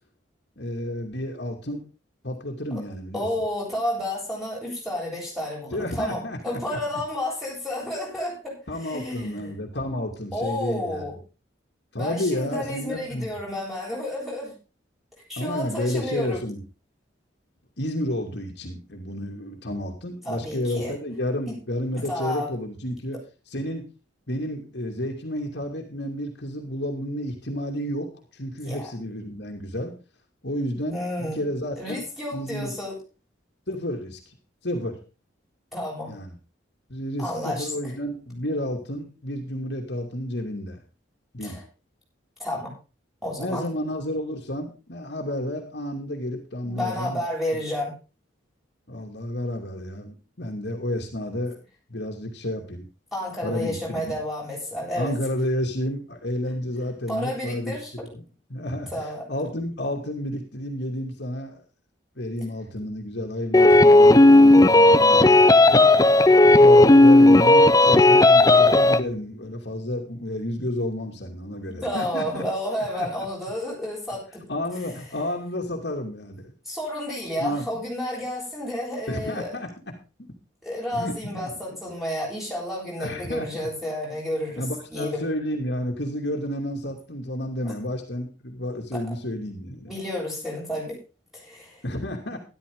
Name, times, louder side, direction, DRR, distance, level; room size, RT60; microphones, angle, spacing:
voice 1, 0.6-1.9 2.2-3.3 5.7-6.8 8.7-11.1 11.9-13.3 15.4-16.6 17.8-23.2 23.5-23.9 24.3-29.9 30.4-32.1 32.3-32.8 33.7-34.3 34.6-35.0 36.1-36.3 36.9-40.8 41.3-41.6 43.4-47.2 48.9-52.8 53.4-54.2 55.0-57.8 58.1-58.2 58.5-61.6 62.2-65.4 65.7-65.9 66.5-72.4 72.9-73.1 74.5-76.5 77.4-77.6 79.1-79.9 80.9-81.5 83.0-83.7 84.6-89.9 91.8-92.4, left 1 dB, 60° left, 1 dB, 2.6 m, -31 dB
voice 2, 3.1-9.5 10.3-11.2 12.0-14.6 15.3-16.4 20.2-20.9 21.5-21.6 22.1-22.5 28.7-28.9 30.9-31.5 31.8-33.0 35.7-36.1 37.2-37.9 41.4-41.6 42.4-42.7 43.2-43.7 46.6-47.9 53.1-55.1 57.1-58.1 58.9-59.2 71.7-74.4 76.7-79.5 80.6-84.6 84.9-85.2 87.6-87.7 88.9-89.0 89.9-91.0 91.3-91.8, left 1 dB, ahead, -3 dB, 7.8 m, -31 dB
sound 1, 63.5-69.0, left 2 dB, 20° left, 0.6 m, -13 dB
13.0 x 12.5 x 3.8 m, 0.31 s
head